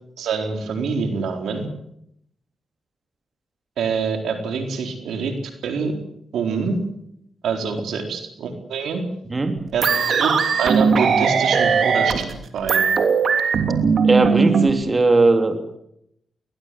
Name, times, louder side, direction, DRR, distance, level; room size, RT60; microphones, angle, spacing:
voice 1, 0.2-1.7 3.8-5.3 5.6-5.9 6.3-6.8 7.4-9.0 9.7-10.3 10.6-12.3 12.5-12.9, right 5 dB, 85° right, 5 dB, 4.1 m, -25 dB
voice 2, 9.3-9.7 14.0-15.8, right 3 dB, 30° right, 7 dB, 3.1 m, -18 dB
sound 1, 9.8-14.7, right 5 dB, 65° right, 3.1 m, -19 dB
20.5 x 20.5 x 7.9 m, 0.74 s
cardioid pair, 65°, 0 cm